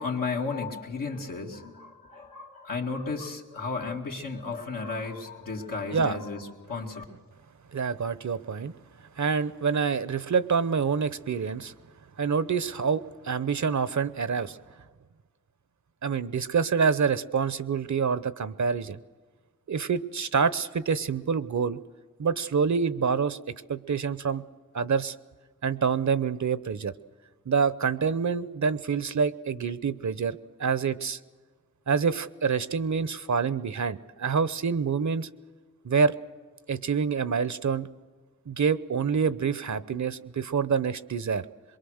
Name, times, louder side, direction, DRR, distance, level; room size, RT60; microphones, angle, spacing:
voice 1, 0.0-7.0, left 4 dB, 90° left, -2 dB, 2.5 m, -34 dB
voice 2, 7.7-8.7 9.2-11.7 12.2-14.6 16.0-19.0 19.7-21.8 22.2-23.4 23.7-24.4 24.7-25.1 25.6-26.9 27.5-31.2 31.9-35.3 35.8-36.1 36.7-37.9 38.5-41.4, right 6 dB, 60° right, 15 dB, 0.9 m, -27 dB
23.0 x 22.5 x 6.5 m, 1.5 s
cardioid pair, 45°, 32 cm